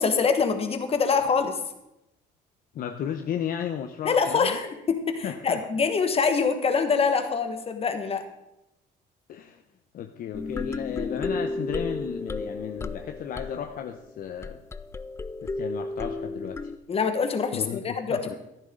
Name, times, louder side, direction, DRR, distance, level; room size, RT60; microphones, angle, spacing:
voice 1, 0.0-1.5 4.0-8.2 16.9-18.4, left 5 dB, 35° left, 7 dB, 1.5 m, -25 dB
voice 2, 2.7-4.6 5.2-5.6 9.3-9.6 9.9-14.6 15.4-16.7 17.5-18.3, left 9 dB, 60° left, 6 dB, 0.8 m, -34 dB
sound 1, 10.3-16.8, left 2 dB, 15° left, 0.4 m, -33 dB
13.0 x 10.5 x 3.8 m, 0.89 s
cardioid pair, 110°, 17 cm